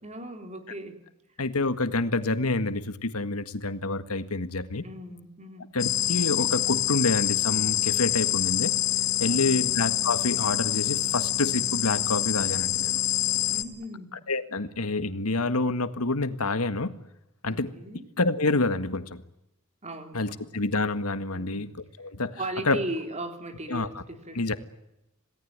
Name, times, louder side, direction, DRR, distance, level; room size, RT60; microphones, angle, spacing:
voice 1, 0.0-1.0 4.8-5.7 9.2-9.8 13.5-14.1 17.5-18.1 19.8-20.6 21.3-21.7 22.4-24.6, right 1 dB, 30° right, 6 dB, 3.7 m, -38 dB
voice 2, 1.4-4.8 5.7-8.7 9.2-13.0 14.3-16.9 17.4-17.7 18.2-19.2 20.1-21.7 22.0-22.4 22.7-22.8 23.7-23.9 24.4-24.6, left 3 dB, 85° left, 11 dB, 1.7 m, -27 dB
sound 1, 5.8-13.6, left 14 dB, 60° left, 2.0 m, -26 dB
27.5 x 18.5 x 9.6 m, 0.87 s
head